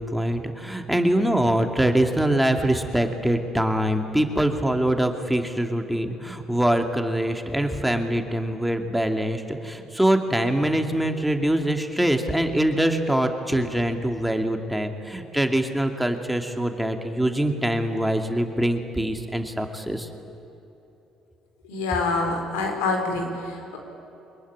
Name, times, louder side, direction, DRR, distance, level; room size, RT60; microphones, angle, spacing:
voice 1, 0.0-20.1, right 1 dB, 5° right, 5 dB, 2.6 m, -24 dB
voice 2, 21.7-23.8, left 3 dB, 85° left, 3 dB, 4.1 m, -26 dB
24.0 x 20.5 x 9.8 m, 3.0 s
hypercardioid pair, 60°, 0 cm